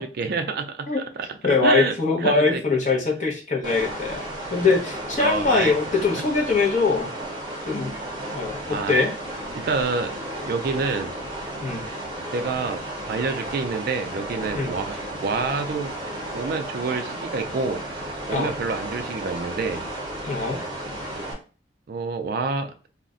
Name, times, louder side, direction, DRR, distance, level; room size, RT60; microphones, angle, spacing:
voice 1, 0.0-0.9 1.2-1.3 1.6-1.9 2.2-2.6 5.2-5.7 6.1-6.2 8.7-9.0 9.5-10.2 10.5-11.1 12.3-15.9 16.3-19.8 21.9-22.7, right 4 dB, 55° right, 7 dB, 0.3 m, -28 dB
voice 2, 1.4-7.1 7.7-7.9 8.3-9.1 11.6-11.9 14.5-14.7 18.3-18.5 20.2-20.6, left 4 dB, 40° left, 0 dB, 0.8 m, -22 dB
sound 1, 3.6-21.3, right 1 dB, 25° right, 0.7 m, -33 dB
2.4 x 2.1 x 3.6 m, 0.35 s
head